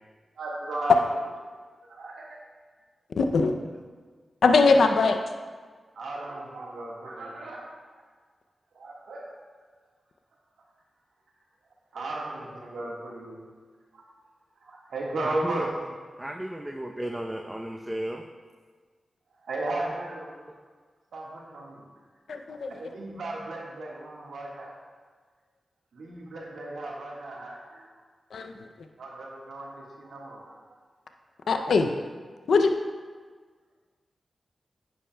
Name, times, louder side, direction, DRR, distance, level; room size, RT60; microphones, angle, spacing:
voice 1, 0.4-1.1 1.9-2.4 5.9-7.6 8.7-9.2 11.9-13.4 13.9-14.1 14.7-15.7 19.5-20.3 21.1-21.9 22.7-24.7 25.9-27.9 29.0-30.5, right 2 dB, 90° right, -3 dB, 1.6 m, -35 dB
voice 2, 3.2-3.5 4.4-5.2 22.3-22.7 28.3-28.5 31.5-31.9 32.5-32.7, left 4 dB, 80° left, 5 dB, 0.5 m, -21 dB
voice 3, 15.2-15.7 16.2-18.2, right 1 dB, 15° right, 2 dB, 0.7 m, -34 dB
10.0 x 9.7 x 2.3 m, 1.5 s
cardioid pair, 45°, 0 cm